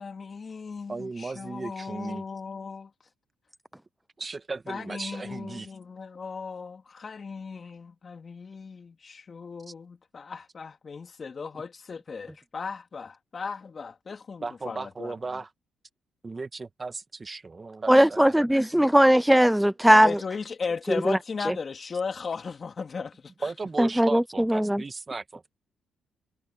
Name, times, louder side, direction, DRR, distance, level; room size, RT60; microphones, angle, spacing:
voice 1, 0.0-2.9 4.7-15.1 18.3-18.4 20.0-23.5, left 5 dB, 40° left, 3.0 m, -36 dB
voice 2, 0.9-2.2 4.2-5.7 9.7-9.8 14.4-15.5 16.2-18.4 23.4-25.4, right 3 dB, 25° right, 1.6 m, -36 dB
voice 3, 17.9-20.2 21.1-21.2 23.8-24.2 24.5-24.8, equal, 5° right, 0.4 m, -19 dB
cardioid pair, 90°, 0 cm